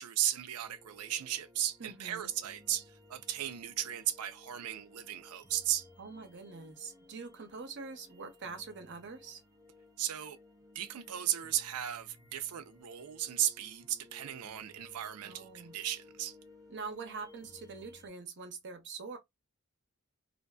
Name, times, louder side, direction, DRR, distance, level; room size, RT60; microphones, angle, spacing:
voice 1, 0.0-5.9 10.0-10.4 10.7-16.4, right 12 dB, 85° right, 0.5 m, -35 dB
sound 1, 0.6-18.1, left 2 dB, 15° right, 0.6 m, -59 dB
voice 2, 1.8-2.3 6.0-9.4 15.2-15.8 16.7-19.2, right 4 dB, 55° right, 0.7 m, -44 dB
2.5 x 2.5 x 2.2 m
head